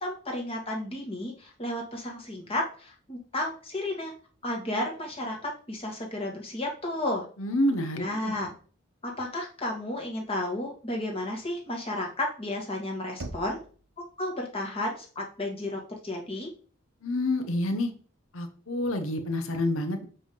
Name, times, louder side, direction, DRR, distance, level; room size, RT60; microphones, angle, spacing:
voice 1, 0.0-4.1 4.4-7.3 8.0-8.5 9.0-13.6 14.2-16.5, left 1 dB, 30° left, 0 dB, 1.9 m, -32 dB
voice 2, 7.4-8.3 17.0-17.9 18.3-20.0, left 1 dB, 85° left, 6 dB, 1.1 m, -28 dB
Knock, 13.2-14.1, right 2 dB, 70° right, 0.8 m, -41 dB
7.7 x 3.6 x 5.3 m, 0.40 s
head